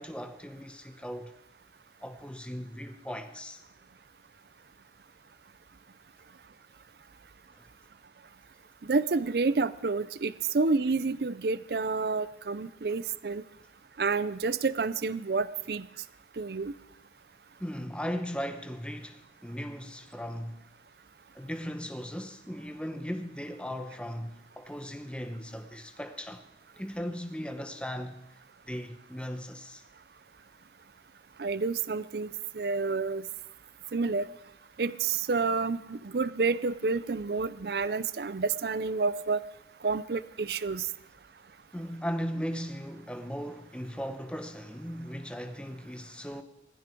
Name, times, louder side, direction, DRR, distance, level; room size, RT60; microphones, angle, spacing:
voice 1, 0.0-1.3 2.0-3.6 17.6-20.7 21.3-26.4 26.7-28.4 28.7-29.8 41.7-46.4, equal, 5° left, 0.8 m, -37 dB
voice 2, 8.9-13.4 14.0-15.9 16.4-16.7 31.4-32.3 32.5-33.2 33.9-34.3 34.8-39.4 39.8-40.9, right 4 dB, 60° right, 0.5 m, -29 dB
19.0 x 15.0 x 4.5 m
head